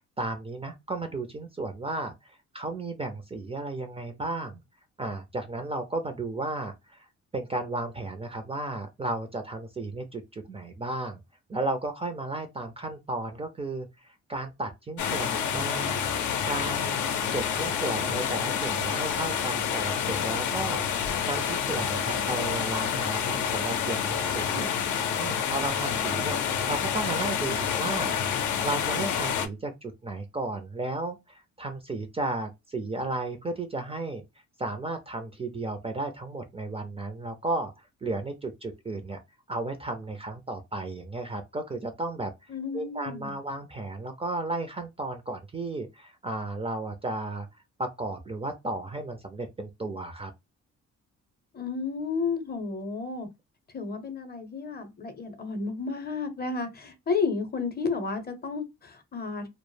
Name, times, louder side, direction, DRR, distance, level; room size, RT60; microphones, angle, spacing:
voice 1, 0.2-4.6 5.0-7.1 7.3-11.2 11.5-16.0 16.4-17.0 17.3-24.7 25.2-26.4 26.7-28.1 28.6-34.2 34.6-39.2 39.5-42.3 42.7-47.5 47.8-50.3, right 2 dB, 20° right, 0.4 m, -34 dB
sound 1, 15.0-29.5, left 7 dB, 75° left, 0.5 m, -28 dB
voice 2, 42.5-43.3 51.5-53.3 53.7-59.5, left 4 dB, 30° left, 0.6 m, -32 dB
2.0 x 2.0 x 3.1 m
cardioid pair, 90°, 30 cm